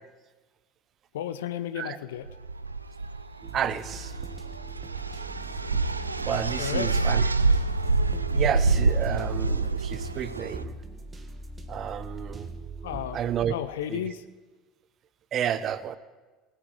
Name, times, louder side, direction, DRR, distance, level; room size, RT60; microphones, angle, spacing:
voice 1, 1.1-2.3 6.6-7.1 12.8-13.2 13.5-14.2, left 10 dB, 70° left, 12 dB, 0.5 m, -33 dB
sound 1, 2.3-10.6, right 3 dB, 85° right, 0.4 m, -27 dB
sound 2, 3.4-13.5, right 3 dB, 25° right, 1.5 m, -41 dB
voice 2, 3.5-4.1 6.2-7.3 8.3-10.8 11.7-12.5 13.1-13.6 13.9-14.0 15.3-16.0, right 9 dB, 40° right, 15 dB, 0.7 m, -31 dB
sound 3, 4.9-10.7, left 2 dB, 15° left, 2.1 m, -50 dB
19.0 x 12.5 x 3.2 m, 1.3 s
figure-of-eight pair, 65°, 0 cm